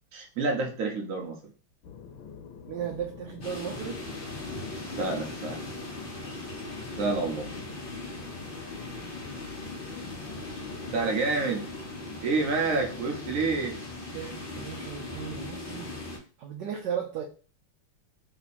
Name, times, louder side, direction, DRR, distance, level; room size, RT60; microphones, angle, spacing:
voice 1, 0.1-1.4 5.0-5.6 7.0-7.5 10.9-11.7 12.2-13.7, right 3 dB, 50° right, 1 dB, 1.1 m, -28 dB
sound 1, 1.8-11.1, left 6 dB, 70° left, 1.4 m, -46 dB
voice 2, 2.7-4.0 14.1-16.0 16.4-17.2, right 8 dB, 75° right, 3 dB, 1.0 m, -35 dB
sound 2, 3.4-16.2, left 2 dB, 45° left, 0.7 m, -39 dB
3.6 x 2.9 x 4.1 m, 0.37 s
omnidirectional pair, 2.4 m